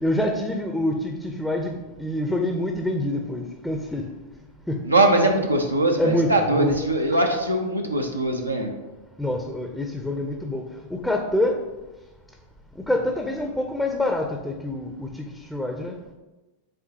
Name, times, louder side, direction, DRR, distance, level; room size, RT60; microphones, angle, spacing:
voice 1, 0.0-4.1 4.7-4.8 5.4-5.5 6.0-6.8 9.2-10.6 10.9-11.6 12.8-15.2 15.5-16.0, left 1 dB, 5° left, 3 dB, 0.6 m, -26 dB
voice 2, 4.8-8.7, right 2 dB, 85° right, 1 dB, 0.8 m, -21 dB
8.8 x 3.8 x 2.8 m, 1.1 s
figure-of-eight pair, 90°, 0 cm